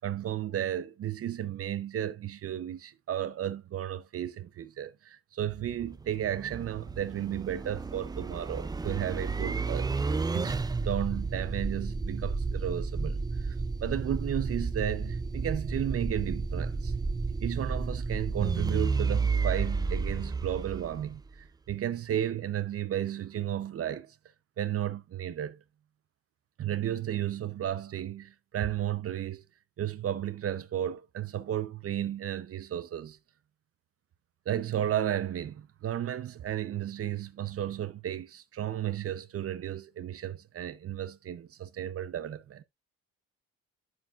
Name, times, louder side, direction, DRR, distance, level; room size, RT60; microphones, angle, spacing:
voice 1, 0.0-13.5 13.8-16.9 17.4-24.1 24.6-25.6 26.6-29.4 29.8-33.2 34.5-42.6, right 11 dB, 50° right, 0.7 m, -33 dB
sound 1, 5.4-21.4, right 4 dB, 15° right, 0.4 m, -32 dB
8.6 x 7.1 x 2.4 m
cardioid pair, 90°, 30 cm